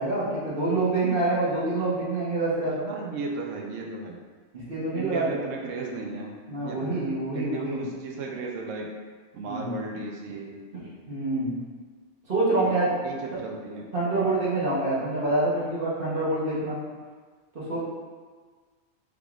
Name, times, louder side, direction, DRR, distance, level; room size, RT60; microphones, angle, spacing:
voice 1, 0.0-2.8 4.5-5.3 6.5-7.9 9.4-9.8 11.1-11.6 12.3-12.9 13.9-16.8 17.5-17.8, right 2 dB, 50° right, -8 dB, 1.0 m, -26 dB
voice 2, 2.8-4.2 4.9-6.4 6.6-7.1 7.3-8.9 9.3-10.6 12.5-13.9 14.1-14.3, right 3 dB, 80° right, 1 dB, 1.0 m, -35 dB
3.5 x 3.4 x 2.4 m, 1.5 s
omnidirectional pair, 1.3 m